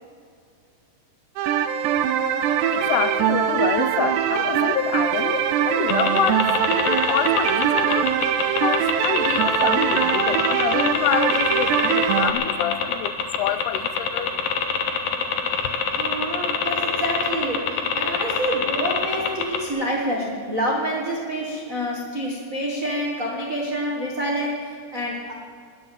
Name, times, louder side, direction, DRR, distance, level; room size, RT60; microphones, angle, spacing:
sound 1, 1.4-12.3, right 9 dB, 85° right, 2.9 m, -22 dB
voice 1, 2.7-8.1 8.6-14.5, left 12 dB, 85° left, 13 dB, 2.5 m, -27 dB
sound 2, 5.9-19.7, left 7 dB, 65° left, 2.6 m, -24 dB
voice 2, 15.9-25.3, equal, 60° right, -3 dB, 0.8 m, -27 dB
20.0 x 7.7 x 7.8 m, 2.3 s
omnidirectional pair, 4.8 m